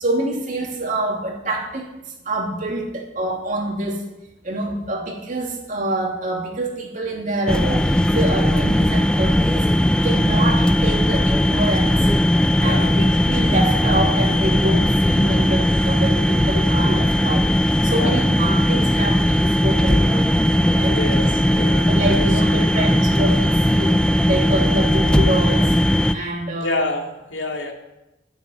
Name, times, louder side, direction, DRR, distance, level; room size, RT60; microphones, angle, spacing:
voice 1, 0.0-1.8 2.2-4.0 4.4-9.7 10.0-12.1 12.6-17.5 17.8-20.4 20.7-21.0 21.9-23.9 24.2-25.7 26.1-26.7, right 1 dB, 45° right, 0 dB, 2.7 m, -26 dB
sound 1, 7.5-26.1, equal, 5° left, 0.5 m, -18 dB
voice 2, 12.6-12.9 17.9-18.2 20.9-22.7 26.6-27.7, left 2 dB, 80° left, 2 dB, 2.5 m, -28 dB
14.5 x 7.1 x 9.6 m, 0.98 s
head